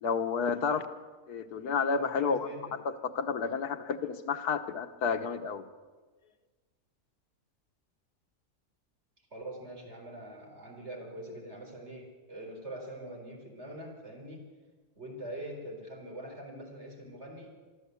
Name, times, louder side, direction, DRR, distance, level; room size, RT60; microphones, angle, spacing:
voice 1, 0.0-0.8 1.3-2.5 2.8-5.6, left 5 dB, 90° left, 9 dB, 1.6 m, -31 dB
voice 2, 1.9-2.8 9.3-14.5 15.0-17.5, right 1 dB, 45° right, 1 dB, 4.5 m, -43 dB
25.0 x 13.0 x 8.3 m, 1.4 s
omnidirectional pair, 1.6 m